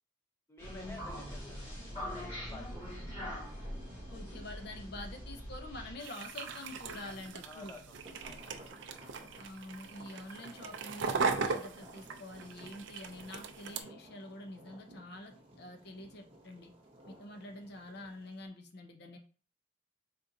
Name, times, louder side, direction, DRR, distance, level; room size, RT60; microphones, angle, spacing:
voice 1, 0.5-1.6 1.9-2.7 7.4-7.9 8.2-8.7, left 2 dB, 10° left, 2 dB, 0.7 m, -50 dB
sound 1, 0.6-5.9, equal, 30° left, 1.7 m, -43 dB
sound 2, 0.8-7.1 7.9-18.5, right 1 dB, 30° right, 0.9 m, -56 dB
voice 2, 4.1-7.8 9.4-16.7 17.1-19.2, left 2 dB, 55° left, 5 dB, 0.6 m, -47 dB
sound 3, 6.0-13.8, right 4 dB, 65° right, 0.4 m, -38 dB
4.2 x 3.7 x 2.6 m, 0.40 s
head